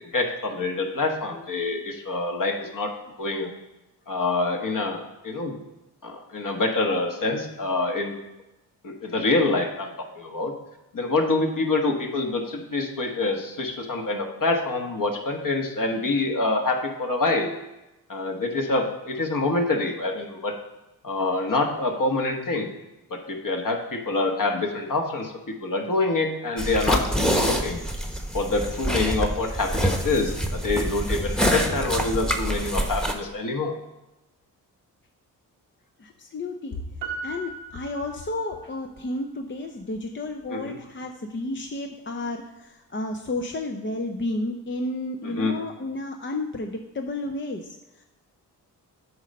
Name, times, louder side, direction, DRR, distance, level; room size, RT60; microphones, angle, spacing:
voice 1, 0.1-2.9 3.2-3.5 4.1-5.5 6.0-8.2 8.8-9.9 10.2-10.5 10.9-17.5 18.1-20.5 21.0-22.7 23.1-27.8 28.3-33.7 40.5-40.7 45.2-45.5, left 3 dB, 45° left, 3 dB, 1.4 m, -26 dB
sound 1, 26.6-33.1, equal, ahead, 1.1 m, -26 dB
voice 2, 36.0-36.8 37.2-48.0, left 2 dB, 25° left, 4 dB, 0.7 m, -32 dB
Piano, 37.0-38.8 39.1-39.2, right 4 dB, 75° right, 1.1 m, -37 dB
7.9 x 4.1 x 5.4 m, 0.99 s
hypercardioid pair, 40°, 45 cm